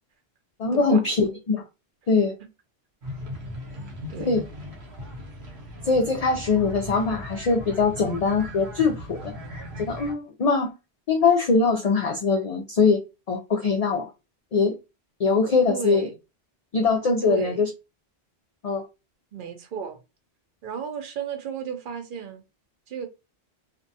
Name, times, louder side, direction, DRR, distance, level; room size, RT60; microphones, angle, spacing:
voice 1, 0.6-1.6 2.1-2.4 4.2-4.4 5.8-9.3 9.8-10.7 11.1-13.0 13.3-14.1 14.5-14.7 15.2-16.1 16.7-17.7 18.6-18.8, left 4 dB, 55° left, 0.4 m, -22 dB
sound 1, 3.0-10.1, left 1 dB, 75° right, 1.0 m, -38 dB
voice 2, 15.7-16.1 17.2-17.6 19.3-20.0 20.6-22.4 22.9-23.1, right 7 dB, 60° right, 0.7 m, -33 dB
2.6 x 2.2 x 2.6 m
omnidirectional pair, 1.1 m